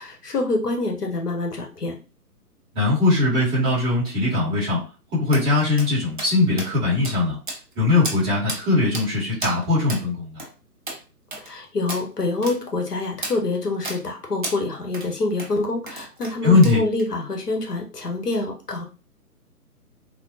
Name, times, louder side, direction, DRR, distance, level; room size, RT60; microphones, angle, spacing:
voice 1, 0.0-2.0 11.4-18.8, left 2 dB, 75° left, 2 dB, 1.0 m, -26 dB
voice 2, 2.7-4.8 5.1-7.4 7.7-10.4 16.4-16.8, left 3 dB, 10° right, -10 dB, 1.1 m, -20 dB
sound 1, 5.3-5.5 5.8-5.9 6.2-6.3 6.6-6.7 7.0-7.2 7.5-7.7 8.0-8.2 8.5-8.6 8.9-9.1 9.4-9.6 9.9-10.0 10.4-10.5 10.9-11.0 11.3-11.5 11.9-12.0 12.4-12.6 13.2-13.4 13.8-14.0 14.4-14.6 14.9-15.1 15.4-15.5 15.9-16.4 16.6-17.1, right 2 dB, 35° right, 0.5 m, -32 dB
3.4 x 2.3 x 2.7 m, 0.33 s
figure-of-eight pair, 135°, 48 cm